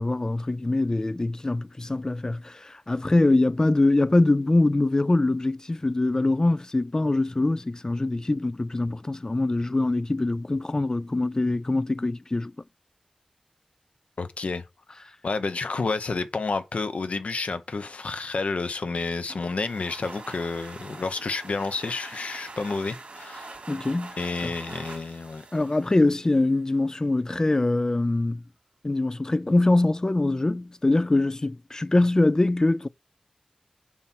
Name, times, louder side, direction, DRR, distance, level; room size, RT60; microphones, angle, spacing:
voice 1, 0.0-12.5 23.7-24.2 24.4-24.5 25.5-28.4 28.8-32.9, left 2 dB, 30° left, 0.4 m, -23 dB
voice 2, 14.2-14.6 15.2-23.6 24.2-25.4, left 4 dB, 85° left, 0.9 m, -30 dB
sound 1, 19.3-26.8, right 3 dB, 65° right, 2.6 m, -44 dB
7.4 x 5.7 x 4.5 m
wide cardioid pair, 85°, 2 cm